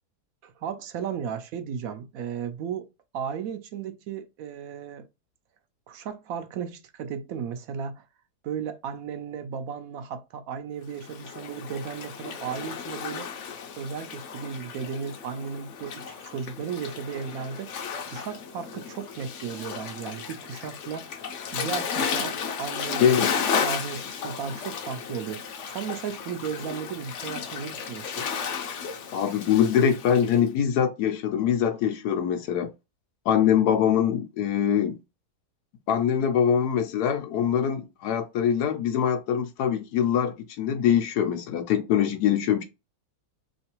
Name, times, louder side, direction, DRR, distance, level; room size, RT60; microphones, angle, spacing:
voice 1, 0.4-2.9 3.1-5.1 5.9-8.1 8.4-13.3 13.8-17.8 18.0-21.1 21.5-23.0 23.5-28.3, right 7 dB, 70° right, 1.0 m, -35 dB
Waves surf, 10.9-30.4, left 6 dB, 60° left, 0.8 m, -34 dB
voice 2, 23.0-23.3 29.1-32.7 33.3-35.0 35.9-42.6, left 8 dB, 85° left, 1.2 m, -23 dB
3.2 x 3.1 x 2.9 m
omnidirectional pair, 1.6 m